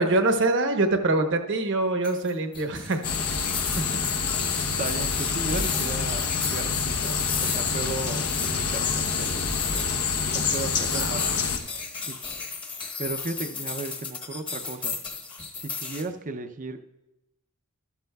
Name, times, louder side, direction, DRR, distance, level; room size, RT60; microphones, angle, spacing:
voice 1, 0.0-3.0 10.9-11.4, right 2 dB, 55° right, 6 dB, 1.0 m, -24 dB
sound 1, 2.0-16.0, left 5 dB, 20° left, 1.0 m, -36 dB
sound 2, 3.0-11.6, left 5 dB, 80° left, 0.9 m, -27 dB
voice 2, 4.6-10.0 10.3-11.4 12.1-12.2 13.0-15.0 15.6-16.8, right 3 dB, 35° right, 8 dB, 0.6 m, -35 dB
13.0 x 12.5 x 2.3 m, 0.96 s
head